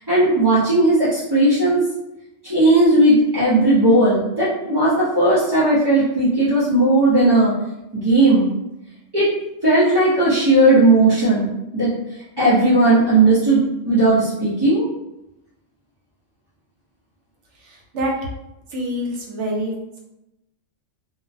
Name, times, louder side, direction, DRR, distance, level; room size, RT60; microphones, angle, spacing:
voice 1, 0.0-1.9 2.4-7.5 7.9-8.5 9.1-9.3 9.6-14.9, right 2 dB, 35° right, -11 dB, 0.4 m, -16 dB
voice 2, 17.6-18.1 18.7-20.0, equal, 75° right, -1 dB, 0.9 m, -26 dB
2.4 x 2.1 x 2.5 m, 0.90 s
omnidirectional pair, 1.3 m